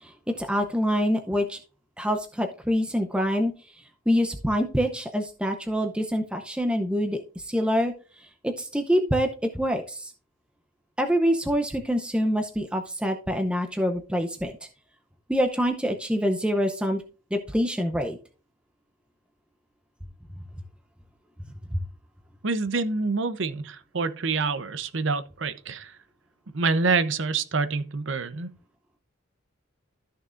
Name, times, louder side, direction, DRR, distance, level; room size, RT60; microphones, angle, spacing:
voice 1, 0.0-1.6 2.0-3.5 4.1-7.2 7.5-7.9 8.4-9.3 9.5-10.1 11.0-14.5 15.3-17.0 17.3-18.2 21.7-21.8, equal, 5° right, 0.6 m, -25 dB
voice 2, 22.4-25.9 26.5-28.5, right 4 dB, 65° right, 0.7 m, -26 dB
13.5 x 6.5 x 2.5 m
head